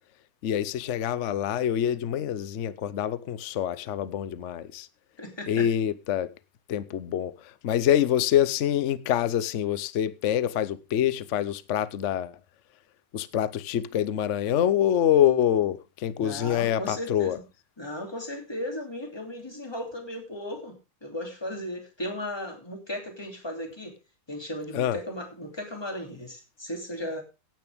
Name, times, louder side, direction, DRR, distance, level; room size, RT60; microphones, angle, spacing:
voice 1, 0.4-4.9 5.5-6.3 6.7-12.4 13.1-17.4 24.7-25.0, left 10 dB, 85° left, 0.6 m, -26 dB
voice 2, 5.2-5.7 16.2-17.4 17.8-24.0 24.3-27.2, left 1 dB, 10° left, 2.9 m, -36 dB
16.5 x 8.9 x 3.5 m
omnidirectional pair, 2.4 m